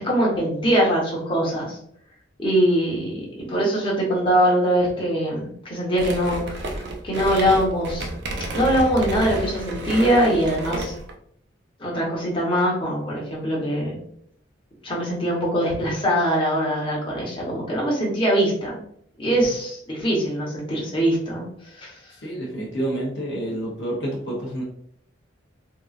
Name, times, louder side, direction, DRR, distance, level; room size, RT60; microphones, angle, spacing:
voice 1, 0.0-1.8 2.4-6.7 7.0-8.1 8.5-10.9 11.8-14.0 14.8-18.8 19.2-21.4 21.7-21.9, equal, 25° left, -4 dB, 1.0 m, -22 dB
sound 1, 5.9-11.1, right 2 dB, 60° right, 0.5 m, -31 dB
voice 2, 22.2-24.6, right 1 dB, 60° left, -2 dB, 0.7 m, -28 dB
3.7 x 2.4 x 2.4 m, 0.66 s
head